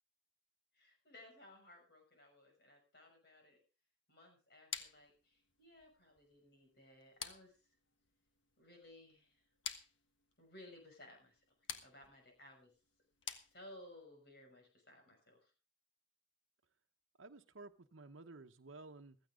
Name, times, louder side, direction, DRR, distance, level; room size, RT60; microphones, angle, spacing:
voice 1, 0.7-3.6 4.1-7.7 8.6-9.4 10.4-11.4 11.8-12.7 13.4-15.5, left 1 dB, 55° left, 6.2 m, -59 dB
sound 1, 4.7-14.0, left 8 dB, 75° left, 1.4 m, -51 dB
voice 2, 17.2-19.2, right 3 dB, 85° right, 0.9 m, -54 dB
15.5 x 14.5 x 3.7 m
head